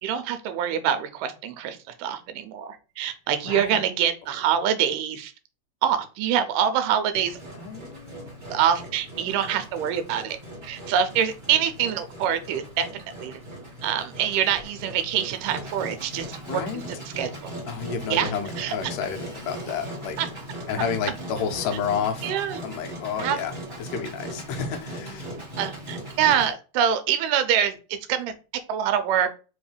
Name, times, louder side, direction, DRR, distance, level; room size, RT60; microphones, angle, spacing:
voice 1, 0.0-5.3 5.8-7.4 8.5-10.4 10.6-13.4 13.8-17.5 18.1-18.7 20.2-20.3 22.2-22.6 23.2-23.4 25.6-28.4 28.7-29.3, right 9 dB, 85° right, 9 dB, 2.2 m, -25 dB
voice 2, 3.5-3.8 7.5-8.3 16.5-16.8 17.7-20.2 20.7-22.3 22.6-25.3, left 6 dB, 75° left, 5 dB, 2.3 m, -30 dB
Engine, 7.1-26.5, right 1 dB, 20° right, 1.4 m, -39 dB
5.1 x 3.1 x 3.3 m, 0.33 s
omnidirectional pair, 3.9 m